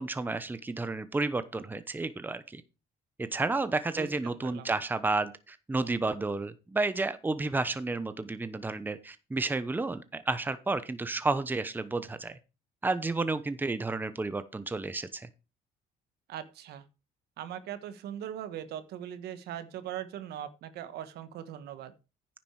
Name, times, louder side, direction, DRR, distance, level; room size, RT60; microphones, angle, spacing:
voice 1, 0.0-2.6 3.2-12.4 12.8-15.3, right 3 dB, 10° right, 12 dB, 0.8 m, -31 dB
voice 2, 16.3-16.8 17.4-21.9, right 10 dB, 75° right, 11 dB, 1.3 m, -40 dB
9.8 x 7.3 x 4.7 m, 0.30 s
cardioid pair, 110°, 17 cm